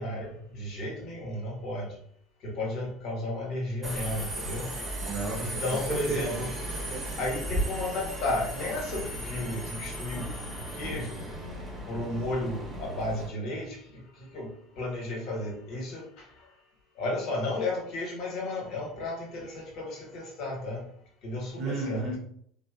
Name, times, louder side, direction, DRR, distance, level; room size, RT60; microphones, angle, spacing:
voice 1, 0.0-1.9 2.4-4.7 5.4-6.8 7.2-10.3 10.7-11.2 11.9-14.5 14.8-16.2 17.0-20.8 21.2-22.0, left 2 dB, 60° left, 1.2 m, -33 dB
Subway metro underground, 3.8-13.3, right 1 dB, 20° right, 1.0 m, -36 dB
voice 2, 5.0-6.5 6.7-7.1 21.6-22.2, right 3 dB, 55° right, 0.8 m, -34 dB
2.7 x 2.1 x 2.3 m
supercardioid pair, 95°, 0 cm